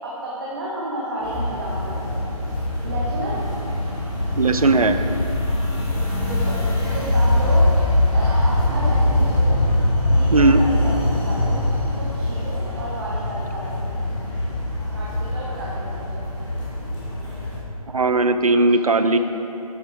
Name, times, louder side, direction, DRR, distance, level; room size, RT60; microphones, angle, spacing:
voice 1, 0.0-2.2 2.8-3.4 6.3-6.6 6.9-7.7 8.1-9.5 10.1-11.6 12.0-13.8 14.9-16.3 19.1-19.2, right 1 dB, 35° right, -6 dB, 1.5 m, -31 dB
sound 1, 1.2-17.5, left 1 dB, 10° left, 2.1 m, -22 dB
voice 2, 4.4-5.0 10.3-10.6 17.9-19.2, right 3 dB, 65° right, 9 dB, 0.6 m, -17 dB
11.5 x 8.6 x 3.6 m, 3.0 s
figure-of-eight pair, 150°, 20 cm